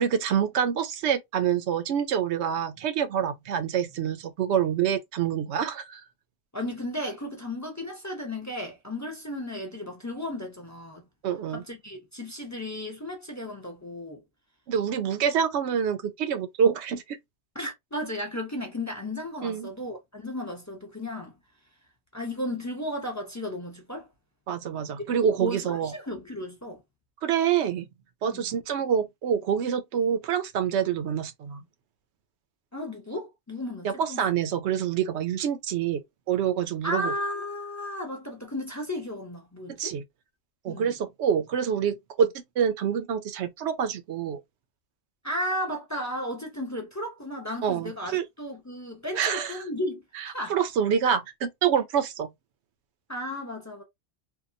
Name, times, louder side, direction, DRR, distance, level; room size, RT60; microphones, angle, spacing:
voice 1, 0.0-6.0 11.2-11.6 14.7-17.2 19.4-19.7 24.5-25.9 27.2-27.9 28.2-31.6 33.8-36.0 36.3-37.1 39.8-40.0 40.6-42.3 42.6-44.4 47.6-48.2 49.2-49.6 50.2-52.3, right 8 dB, 90° right, 0.9 m, -26 dB
voice 2, 6.5-11.1 11.5-14.2 17.5-21.3 22.1-24.1 25.0-25.1 25.4-26.8 28.2-28.5 32.7-34.2 36.8-40.0 40.7-40.9 45.2-50.6 53.1-53.8, left 1 dB, 20° left, 0.6 m, -34 dB
2.7 x 2.2 x 2.5 m
omnidirectional pair, 1.1 m